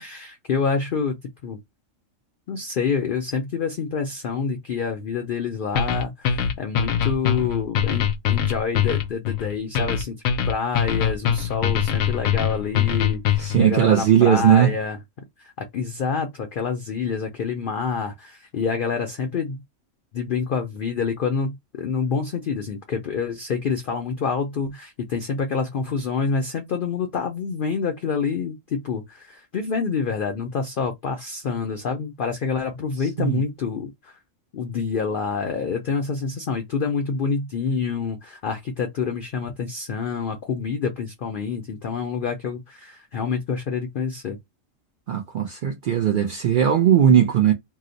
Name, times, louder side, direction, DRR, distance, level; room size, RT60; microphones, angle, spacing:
voice 1, 0.0-1.6 2.5-10.1 10.5-15.0 15.4-19.6 20.1-34.2 34.5-44.4, left 5 dB, 60° left, 0.5 m, -27 dB
sound 1, 5.8-13.6, left 8 dB, 85° left, 1.0 m, -23 dB
voice 2, 13.4-14.7 33.2-33.4 45.1-47.5, right 9 dB, 70° right, 0.4 m, -18 dB
2.8 x 2.0 x 3.7 m
omnidirectional pair, 1.4 m